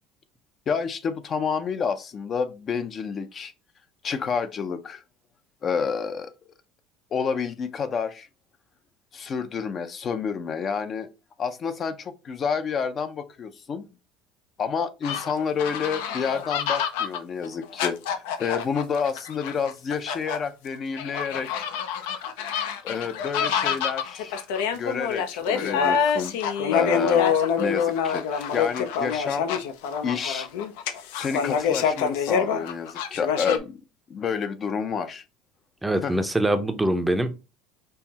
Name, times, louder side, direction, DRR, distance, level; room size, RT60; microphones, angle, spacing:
voice 1, 0.7-3.5 4.0-5.0 5.6-6.3 7.1-8.3 9.1-11.1 11.4-13.9 14.6-21.7 22.8-24.5 24.7-26.4 26.7-27.3 27.6-29.5 30.0-30.5 31.1-33.8 34.1-35.2 36.0-36.1, left 6 dB, 35° left, 0.5 m, -29 dB
sound 1, 15.0-20.4 21.0-33.6, left 7 dB, 85° left, 0.5 m, -26 dB
voice 2, 35.8-37.4, right 1 dB, 10° right, 0.5 m, -24 dB
5.5 x 2.0 x 2.8 m
supercardioid pair, 115°, 0 cm